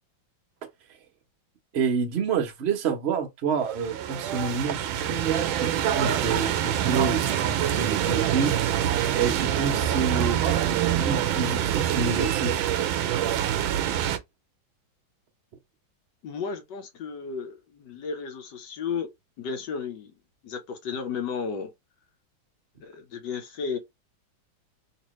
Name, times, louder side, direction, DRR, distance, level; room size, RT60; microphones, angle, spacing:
voice 1, 1.7-8.6 9.1-12.6, right 5 dB, 55° right, 0.7 m, -28 dB
sound 1, 3.7-14.2, right 10 dB, 80° right, 1.3 m, -25 dB
voice 2, 16.2-19.1 19.4-20.1 20.4-21.7 22.8-23.8, left 6 dB, 65° left, 1.3 m, -33 dB
3.3 x 2.8 x 3.1 m
omnidirectional pair, 2.2 m